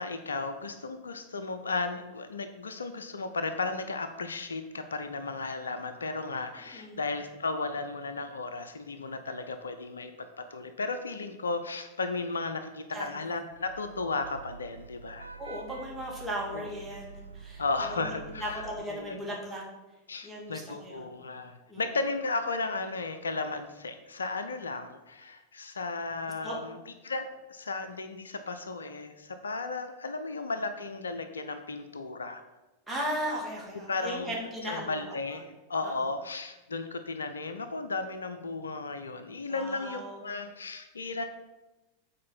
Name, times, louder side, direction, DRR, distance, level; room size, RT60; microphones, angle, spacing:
voice 1, 0.0-15.3 16.5-16.7 17.6-19.2 20.1-26.8 27.0-32.4 33.9-34.3 34.6-41.2, left 3 dB, 70° left, 9 dB, 0.5 m, -35 dB
voice 2, 6.7-7.0 11.1-11.2 12.9-13.2 15.4-19.6 20.2-21.1 21.7-21.8 26.4-26.6 32.9-35.4 35.8-36.0 39.5-40.2, equal, 10° right, -4 dB, 2.5 m, -37 dB
Vehicle horn car horn honking / Traffic noise roadway noise, 13.5-18.8, right 5 dB, 80° right, 0.4 m, -47 dB
7.5 x 4.5 x 6.0 m, 1.1 s
figure-of-eight pair, 90°, 0 cm